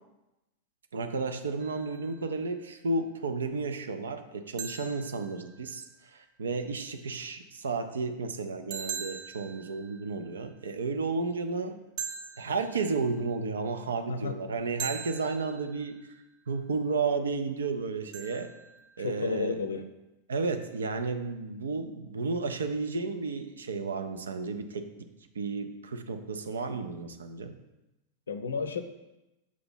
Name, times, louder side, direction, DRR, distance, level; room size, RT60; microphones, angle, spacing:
voice 1, 0.9-11.8 12.4-16.0 16.5-18.5 19.0-19.6 20.3-25.1 25.3-27.6, right 4 dB, 70° right, 7 dB, 0.5 m, -32 dB
sound 1, 1.6-2.4 4.6-6.0 8.7-10.5 12.0-13.4 14.8-16.2 18.1-19.3, right 7 dB, 45° right, 0.8 m, -42 dB
voice 2, 19.0-19.9 28.3-28.8, left 5 dB, 70° left, 9 dB, 0.4 m, -32 dB
6.1 x 2.9 x 5.5 m, 0.98 s
figure-of-eight pair, 90°, 0 cm